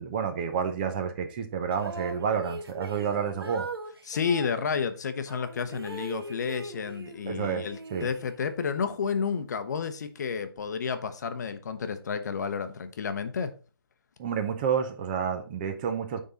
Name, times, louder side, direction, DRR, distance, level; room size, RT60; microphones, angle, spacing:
voice 1, 0.0-3.7 7.3-7.6 7.9-8.1 14.2-16.2, right 7 dB, 20° right, 0.6 m, -29 dB
sound 1, 1.7-4.6 5.3-7.2 7.6-8.7, right 2 dB, 85° right, 1.4 m, -40 dB
voice 2, 4.1-13.6, left 6 dB, 45° left, 0.8 m, -31 dB
9.2 x 3.8 x 4.0 m
hypercardioid pair, 160°, 13 cm